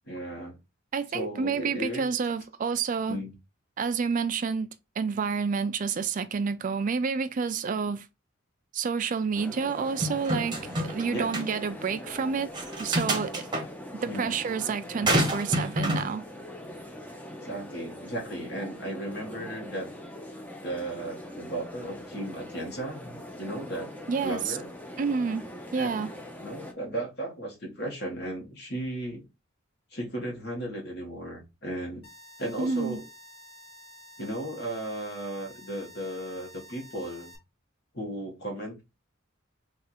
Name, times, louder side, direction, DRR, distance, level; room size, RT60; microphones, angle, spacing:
voice 1, 0.1-0.6 1.1-2.0 3.1-3.3 11.1-11.4 13.1-13.2 14.1-14.3 15.0-15.1 17.4-19.9 20.6-23.9 24.2-24.7 25.7-26.0 26.4-29.3 29.9-32.0 32.4-33.0 34.2-37.3 37.9-38.8, right 1 dB, 55° left, 1.5 m, -35 dB
voice 2, 0.9-3.2 3.8-4.7 5.0-8.1 8.7-12.5 12.8-13.5 14.0-16.2 24.1-24.6 25.0-26.1 32.6-33.0, right 5 dB, 40° right, 0.3 m, -29 dB
sound 1, 9.3-26.7, left 1 dB, 10° left, 0.6 m, -42 dB
plastic small tools drop, 10.0-11.0 11.3-11.5 12.5-13.6 15.1-16.1, right 1 dB, 20° right, 0.9 m, -27 dB
sound 2, 32.0-37.4, equal, 75° left, 1.3 m, -50 dB
3.4 x 2.5 x 4.2 m
head